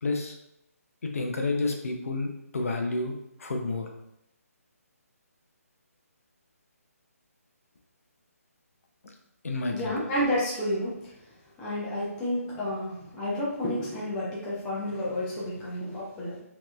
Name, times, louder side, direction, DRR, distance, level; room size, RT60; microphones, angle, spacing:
voice 1, 0.0-0.4 1.0-3.9 9.4-9.9, left 3 dB, 65° left, 3 dB, 0.6 m, -30 dB
voice 2, 9.7-11.1 11.6-16.4, left 1 dB, 5° left, -7 dB, 0.3 m, -30 dB
3.0 x 2.9 x 2.2 m, 0.82 s
hypercardioid pair, 170°, 8 cm